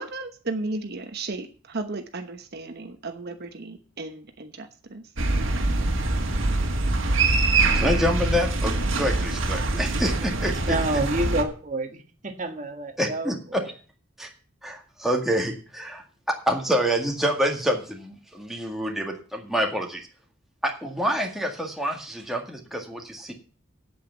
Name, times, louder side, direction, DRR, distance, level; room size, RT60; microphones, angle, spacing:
voice 1, 0.0-5.0, right 2 dB, 55° right, 6 dB, 1.0 m, -34 dB
sound 1, 5.2-11.4, right 2 dB, 75° right, 1.8 m, -24 dB
voice 2, 7.7-10.6 13.0-13.4 14.2-14.3 14.6-20.1 20.6-23.3, equal, ahead, 1 dB, 1.9 m, -27 dB
voice 3, 10.5-13.7, right 1 dB, 40° right, 6 dB, 1.4 m, -29 dB
8.4 x 8.2 x 8.1 m, 0.40 s
head